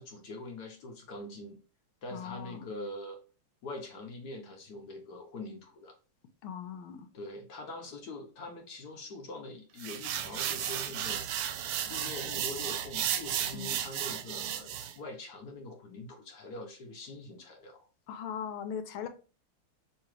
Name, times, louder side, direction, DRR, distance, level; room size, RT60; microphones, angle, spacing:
voice 1, 0.0-1.6 2.0-3.2 3.6-5.9 7.1-11.2 11.9-17.9, left 2 dB, 60° left, 3 dB, 1.1 m, -43 dB
voice 2, 2.1-2.7 6.4-7.1 13.5-13.8 18.1-19.1, left 8 dB, 80° left, 9 dB, 1.4 m, -39 dB
sound 1, 9.8-14.9, right 10 dB, 85° right, 1.5 m, -34 dB
sound 2, 10.8-11.8, right 9 dB, 55° right, 1.1 m, -50 dB
5.7 x 2.7 x 3.1 m, 0.35 s
omnidirectional pair, 2.3 m